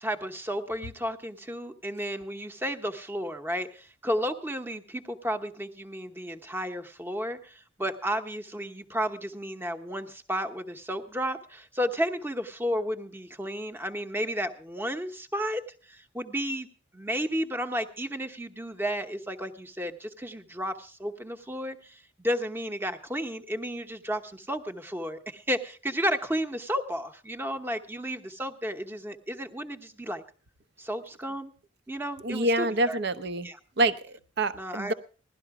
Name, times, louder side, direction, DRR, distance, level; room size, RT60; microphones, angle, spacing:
voice 1, 0.0-15.6 15.9-16.7 16.9-30.2 30.8-31.5 31.9-33.0 33.4-33.6 34.6-34.9, equal, 10° right, 8 dB, 0.9 m, -32 dB
voice 2, 32.2-33.5 33.8-34.9, right 1 dB, 55° right, 12 dB, 0.8 m, -27 dB
17.0 x 12.0 x 4.8 m, 0.38 s
head